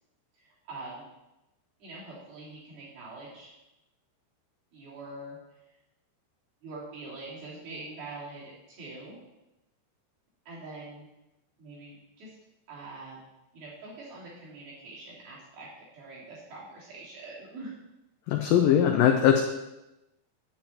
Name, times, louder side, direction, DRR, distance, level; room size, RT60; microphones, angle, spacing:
voice 1, 0.3-1.0 1.8-3.5 4.7-5.4 6.6-9.2 10.5-11.1 11.6-12.4 12.7-15.7 15.9-17.8, right 2 dB, 65° right, -7 dB, 5.2 m, -44 dB
voice 2, 18.3-19.4, left 9 dB, 85° left, 4 dB, 2.0 m, -21 dB
10.5 x 9.1 x 4.5 m, 0.95 s
omnidirectional pair, 4.9 m